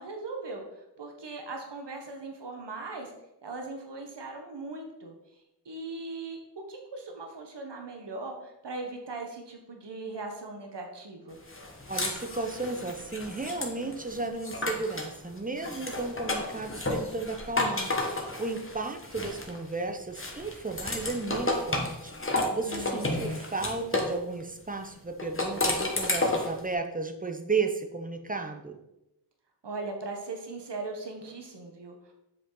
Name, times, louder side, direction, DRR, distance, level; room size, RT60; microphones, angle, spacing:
voice 1, 0.0-3.1 3.4-5.1 5.6-6.4 6.7-11.4 22.7-23.1 29.6-32.1, right 3 dB, 80° right, 3 dB, 1.1 m, -39 dB
sound 1, 11.5-15.1 15.6-19.7 20.1-24.2 25.2-26.6, left 2 dB, 30° left, 1.3 m, -32 dB
voice 2, 11.9-28.8, right 3 dB, 20° right, 4 dB, 0.8 m, -34 dB
7.5 x 5.0 x 3.8 m, 0.88 s
wide cardioid pair, 75°, 41 cm